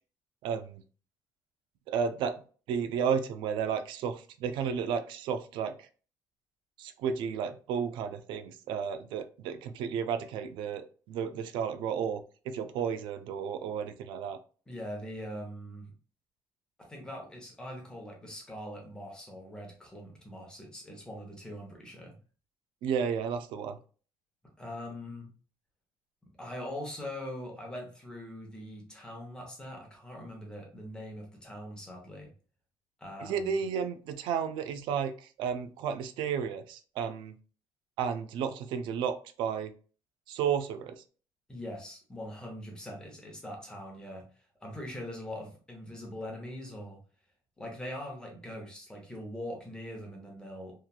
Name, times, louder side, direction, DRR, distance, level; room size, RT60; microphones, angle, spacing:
voice 1, 0.4-0.8 1.9-2.4 2.7-5.9 6.8-14.4 22.8-23.8 33.2-37.4 38.0-39.7 40.3-41.0, right 7 dB, 75° right, 10 dB, 0.3 m, -33 dB
voice 2, 14.7-15.9 16.8-22.1 24.6-25.3 26.4-32.3 33.0-33.6 41.5-44.3 44.6-47.0 47.6-50.7, left 1 dB, 10° left, 0 dB, 0.8 m, -42 dB
2.9 x 2.3 x 2.2 m, 0.39 s
cardioid pair, 150°, 9 cm